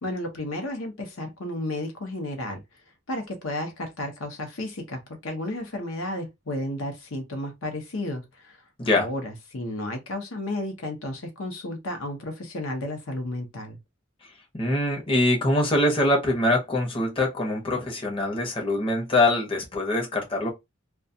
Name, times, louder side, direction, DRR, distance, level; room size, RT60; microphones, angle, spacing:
voice 1, 0.0-2.6 3.1-13.8, left 1 dB, 70° left, 0.8 m, -33 dB
voice 2, 14.5-20.5, left 1 dB, 25° left, 0.8 m, -23 dB
2.3 x 2.3 x 2.6 m
head